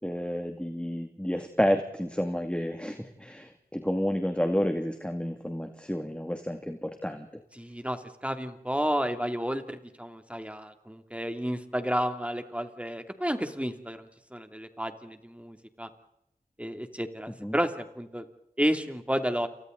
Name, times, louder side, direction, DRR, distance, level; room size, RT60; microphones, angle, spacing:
voice 1, 0.0-7.3 17.4-17.6, equal, 5° left, 5 dB, 2.4 m, -30 dB
voice 2, 7.6-15.9 16.6-18.2 18.6-19.5, equal, 10° right, 7 dB, 2.8 m, -31 dB
29.5 x 29.0 x 4.0 m, 0.78 s
wide cardioid pair, 45°, 15 cm